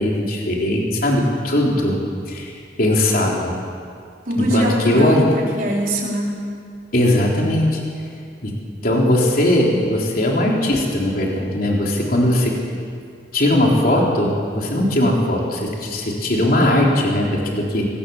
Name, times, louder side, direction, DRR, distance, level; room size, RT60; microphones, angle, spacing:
voice 1, 0.0-2.0 2.3-2.5 2.8-3.5 4.4-5.3 6.9-7.8 8.4-8.5 8.8-12.5 13.3-17.9, left 1 dB, 55° left, -2 dB, 3.8 m, -19 dB
voice 2, 4.3-6.4, right 1 dB, 50° right, -3 dB, 4.8 m, -23 dB
24.0 x 20.0 x 7.2 m, 2.3 s
head